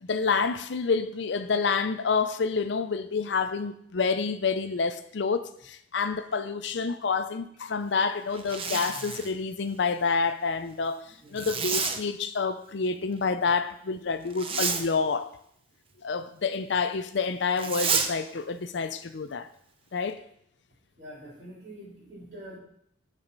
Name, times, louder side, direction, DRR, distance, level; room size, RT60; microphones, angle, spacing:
voice 1, 0.0-11.0 11.3-15.3 16.0-19.5 19.9-20.2, left 5 dB, 65° left, 0.5 m, -28 dB
Zipper (clothing), 8.3-9.4 11.4-12.0 14.3-14.9 17.6-18.1, right 5 dB, 30° right, 0.6 m, -29 dB
voice 2, 11.0-11.5 21.0-22.6, right 1 dB, 60° right, 3.2 m, -45 dB
8.9 x 4.2 x 5.3 m
head